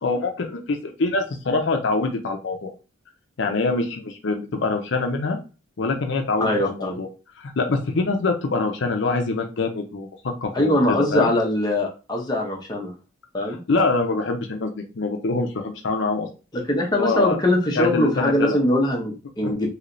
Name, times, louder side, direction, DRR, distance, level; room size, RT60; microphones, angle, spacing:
voice 1, 0.0-2.7 3.4-5.4 5.8-7.1 7.4-11.3 13.5-16.3 16.9-17.4 17.8-18.6 19.4-19.5, left 3 dB, 60° left, 4 dB, 0.5 m, -24 dB
voice 2, 6.4-7.0 10.5-12.9 13.3-13.6 16.7-19.7, left 1 dB, 20° left, 0 dB, 0.7 m, -22 dB
3.1 x 2.8 x 2.6 m, 0.31 s
head